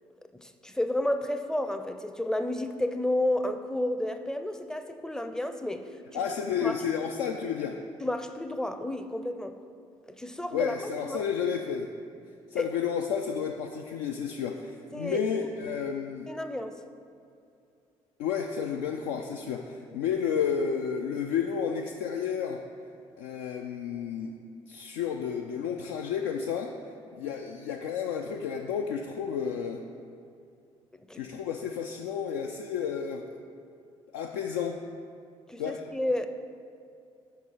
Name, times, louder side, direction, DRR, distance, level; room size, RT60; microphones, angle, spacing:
voice 1, 0.4-5.8 6.1-6.2 6.6-6.7 8.0-9.5 10.1-11.2 12.5-12.7 14.9-15.2 16.3-16.8 31.1-31.2 35.5-36.3, left 1 dB, 5° left, 8 dB, 0.5 m, -31 dB
voice 2, 6.1-7.8 10.5-11.9 12.5-16.3 18.2-22.6 23.2-24.4 24.7-26.7 27.1-29.8 31.1-33.4 34.1-34.8 35.6-35.9, left 7 dB, 70° left, 3 dB, 0.4 m, -31 dB
5.6 x 4.7 x 5.4 m, 2.5 s
figure-of-eight pair, 45°, 15 cm